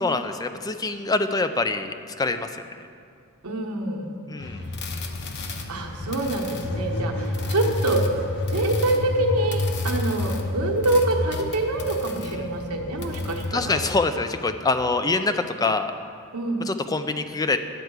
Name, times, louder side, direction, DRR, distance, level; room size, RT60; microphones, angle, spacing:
voice 1, 0.0-2.6 4.3-4.6 12.2-12.5 13.5-15.9 16.6-17.6, left 3 dB, 15° left, 9 dB, 0.4 m, -25 dB
voice 2, 3.4-4.1 5.7-8.0 8.5-13.6 16.3-16.6, right 2 dB, 85° right, 1 dB, 1.1 m, -25 dB
sound 1, 4.4-13.8, left 2 dB, 50° left, 0.8 m, -30 dB
11.0 x 4.6 x 7.9 m, 2.3 s
head